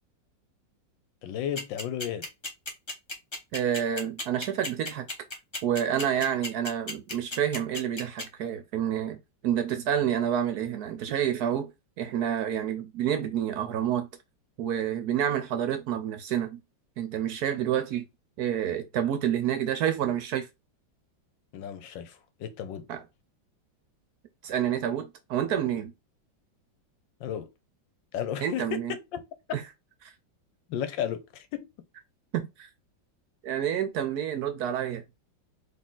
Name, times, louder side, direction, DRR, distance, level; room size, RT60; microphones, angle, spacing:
voice 1, 1.2-2.3 21.5-22.9 27.2-27.5 28.1-29.2 29.5-29.6 30.7-31.7, left 9 dB, 85° left, 1.5 m, -34 dB
sound 1, 1.5-8.2, left 2 dB, 20° left, 1.0 m, -34 dB
voice 2, 3.5-5.1 5.6-9.2 9.4-11.7 12.0-14.1 14.6-16.6 17.0-18.1 18.4-20.5 22.9-23.0 24.4-25.9 28.4-28.9 29.5-29.6 30.0-30.1 32.3-32.7 33.4-35.0, right 9 dB, 65° right, 1.0 m, -28 dB
4.1 x 3.0 x 3.8 m
omnidirectional pair, 2.0 m